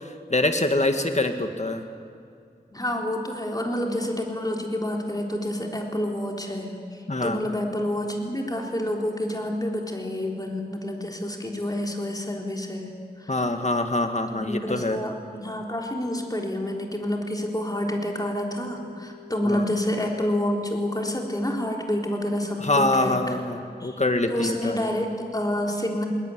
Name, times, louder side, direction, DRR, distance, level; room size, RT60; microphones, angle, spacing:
voice 1, 0.0-1.8 7.1-7.4 13.3-15.0 19.5-19.6 22.6-24.8, left 2 dB, 45° left, 6 dB, 2.0 m, -25 dB
voice 2, 2.7-13.3 14.3-23.2 23.8-24.0 24.3-26.1, left 1 dB, 20° left, 0 dB, 3.8 m, -28 dB
sound 1, 16.0-23.4, left 11 dB, 65° left, 5.4 m, -48 dB
20.5 x 20.0 x 9.5 m, 2.4 s
wide cardioid pair, 55°, 17 cm